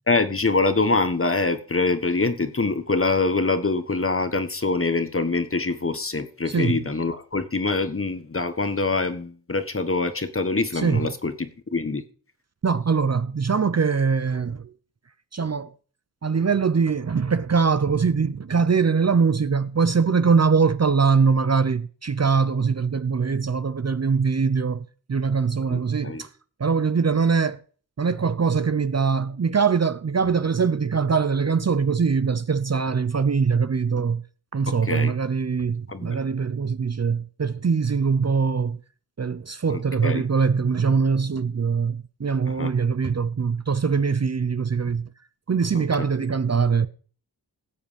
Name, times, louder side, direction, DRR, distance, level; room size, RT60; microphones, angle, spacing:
voice 1, 0.1-12.0 25.7-26.2 34.8-35.1 35.9-36.2 39.7-40.2 42.5-42.7 45.7-46.1, left 3 dB, 30° left, 1.4 m, -25 dB
voice 2, 6.5-6.8 10.7-11.0 12.6-14.7 15.3-15.7 16.2-26.3 26.6-27.6 28.0-34.2 34.5-38.8 39.2-45.1 45.5-46.9, right 5 dB, 40° right, 0.7 m, -22 dB
17.0 x 7.9 x 5.2 m
wide cardioid pair, 110°, 41 cm